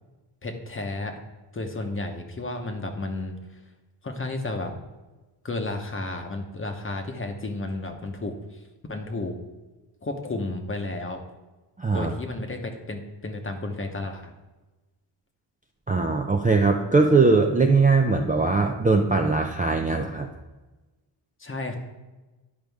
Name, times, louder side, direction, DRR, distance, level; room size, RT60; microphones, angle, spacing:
voice 1, 0.4-1.1 1.5-3.4 4.0-4.7 5.4-8.6 8.9-9.3 10.0-11.2 11.9-14.3 21.4-21.7, left 2 dB, 25° left, 4 dB, 0.9 m, -32 dB
voice 2, 11.8-12.1 15.9-20.3, right 3 dB, 20° right, 2 dB, 0.4 m, -20 dB
11.0 x 5.0 x 3.5 m, 1.1 s
wide cardioid pair, 120°, 46 cm